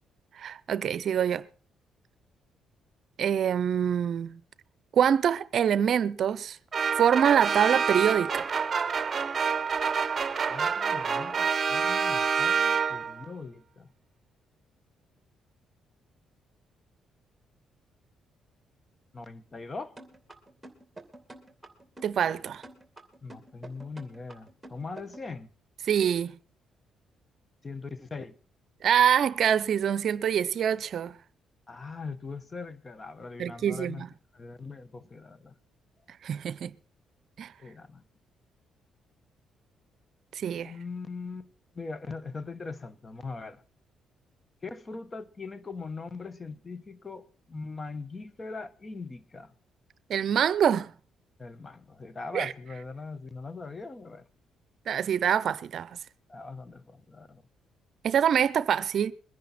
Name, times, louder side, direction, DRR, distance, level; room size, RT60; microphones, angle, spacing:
voice 1, 0.4-1.4 3.2-4.4 4.9-6.6 7.0-8.5 22.0-22.6 25.9-26.4 28.8-31.2 33.4-34.1 36.2-36.7 37.4-37.5 40.4-40.7 50.1-50.9 52.3-52.5 54.9-56.0 58.0-59.1, right 8 dB, 60° right, 0.6 m, -25 dB
sound 1, 6.7-13.3, right 6 dB, 40° right, 0.9 m, -27 dB
voice 2, 10.5-13.9 19.1-19.9 23.2-25.5 27.6-28.4 31.7-34.1 34.3-35.6 37.6-38.0 40.6-41.5 41.7-43.6 44.6-49.5 51.4-54.3 56.3-57.4, left 4 dB, 30° left, 1.1 m, -41 dB
sound 2, 20.0-25.3, right 2 dB, 10° right, 2.7 m, -47 dB
22.0 x 10.5 x 4.2 m
cardioid pair, 90°, 0 cm